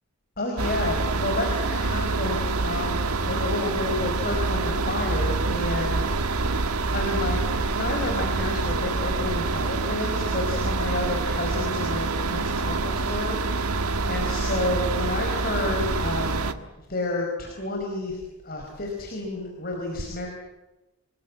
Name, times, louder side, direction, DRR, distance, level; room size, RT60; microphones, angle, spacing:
voice 1, 0.4-16.5 16.9-20.3, left 2 dB, 40° left, 1 dB, 4.9 m, -30 dB
sound 1, 0.6-16.5, right 3 dB, 85° right, 1.6 m, -26 dB
28.5 x 21.0 x 8.8 m, 1.0 s
head